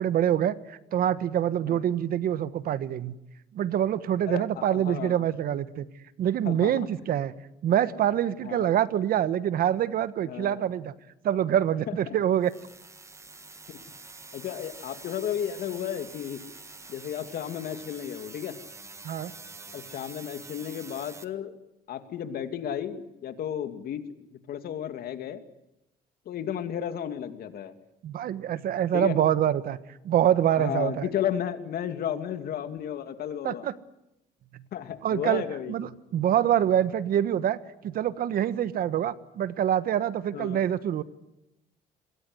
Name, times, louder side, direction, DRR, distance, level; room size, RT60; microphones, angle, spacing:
voice 1, 0.0-3.1 3.5-5.9 6.2-7.3 7.6-10.9 11.2-12.5 19.0-19.3 28.0-29.8 30.0-31.1 33.4-33.7 34.5-34.6 35.0-37.6 37.8-41.0, right 10 dB, 60° right, 14 dB, 1.3 m, -25 dB
voice 2, 4.3-5.2 6.4-6.7 8.4-8.7 10.2-10.6 11.9-12.2 14.3-16.4 16.9-18.6 19.7-21.5 21.9-24.0 24.5-25.4 26.3-27.7 28.9-29.2 30.6-33.7 34.7-35.8 40.3-40.6, left 9 dB, 65° left, 8 dB, 2.5 m, -33 dB
sound 1, 12.4-21.3, right 3 dB, 15° right, 1.8 m, -46 dB
27.0 x 22.0 x 8.0 m, 0.89 s
cardioid pair, 110°, 17 cm